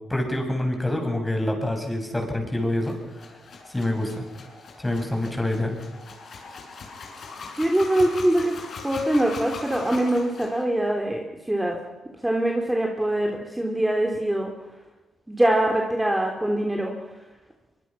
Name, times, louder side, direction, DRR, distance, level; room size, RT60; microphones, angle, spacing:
voice 1, 0.1-3.0 3.7-4.2 4.8-5.8, left 1 dB, 15° left, 4 dB, 6.5 m, -26 dB
sound 1, 2.8-10.6, left 4 dB, 60° left, 6.7 m, -40 dB
voice 2, 7.6-8.5 8.8-11.8 12.2-14.5 15.3-16.9, right 1 dB, 10° right, 1 dB, 3.4 m, -23 dB
23.5 x 23.0 x 6.0 m, 1.1 s
cardioid pair, 85°, 0 cm